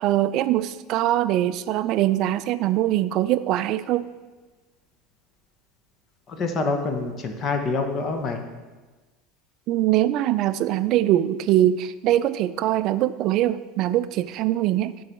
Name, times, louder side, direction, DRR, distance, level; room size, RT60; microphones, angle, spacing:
voice 1, 0.0-4.0 9.7-15.0, right 13 dB, 45° right, 13 dB, 0.3 m, -22 dB
voice 2, 6.3-8.4, left 3 dB, 30° left, 5 dB, 0.8 m, -26 dB
11.5 x 4.0 x 4.3 m, 1.3 s
supercardioid pair, 150°, 0 cm